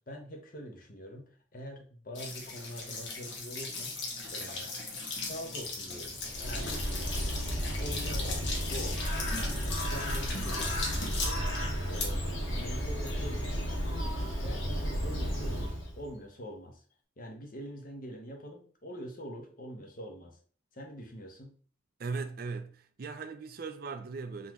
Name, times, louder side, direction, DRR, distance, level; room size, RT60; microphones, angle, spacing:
voice 1, 0.1-3.9 4.3-4.7 5.2-6.8 7.2-14.1 14.4-16.8 17.2-20.4 20.7-21.5, equal, 45° left, 0.9 m, -45 dB
sound 1, 2.1-13.8, left 3 dB, 65° left, 1.3 m, -39 dB
Bird, 6.0-16.1, equal, 90° left, 1.6 m, -33 dB
voice 2, 22.0-24.5, right 4 dB, 45° right, 0.4 m, -38 dB
4.0 x 3.0 x 3.6 m
head